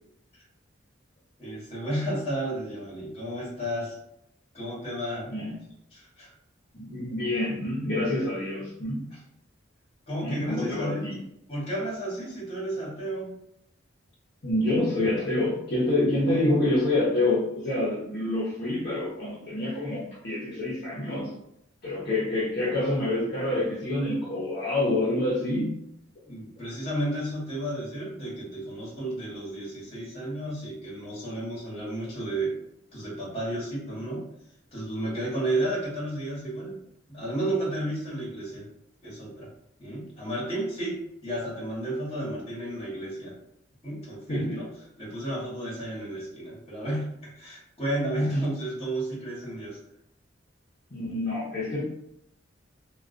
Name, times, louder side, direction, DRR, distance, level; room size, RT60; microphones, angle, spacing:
voice 1, 1.4-4.0 4.5-5.3 5.9-6.3 9.1-9.2 10.1-11.1 11.5-13.3 26.3-32.6 32.9-34.2 34.7-36.8 37.1-38.7 39.0-39.5 39.8-43.3 43.8-44.7 45.0-49.8, right 1 dB, 30° left, -7 dB, 1.0 m, -32 dB
voice 2, 6.7-9.1 10.2-11.2 14.4-21.3 21.8-25.8 44.3-44.6 50.9-51.8, left 1 dB, 50° left, -8 dB, 0.7 m, -27 dB
2.2 x 2.2 x 2.4 m, 0.78 s
head